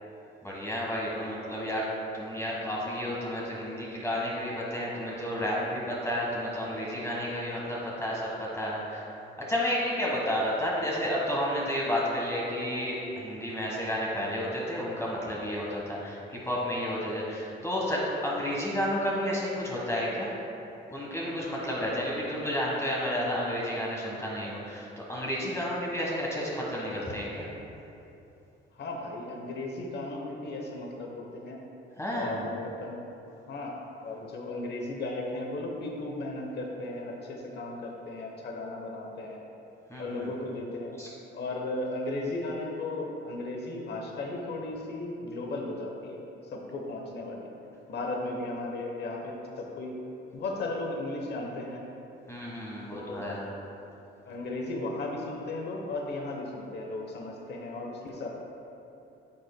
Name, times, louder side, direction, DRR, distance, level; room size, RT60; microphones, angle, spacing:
voice 1, 0.4-1.9 2.1-9.1 9.5-20.3 20.9-27.5 32.0-32.4 39.9-40.3 41.0-41.1 52.3-53.5, equal, 15° left, -5 dB, 1.3 m, -31 dB
voice 2, 28.8-31.6 32.1-33.0 33.5-33.8 34.0-39.4 40.0-41.0 41.3-47.5 47.9-50.0 50.3-51.8 52.9-53.3 54.2-58.3, left 2 dB, 55° left, 0 dB, 0.9 m, -35 dB
9.6 x 6.5 x 2.2 m, 2.9 s
cardioid pair, 90°, 20 cm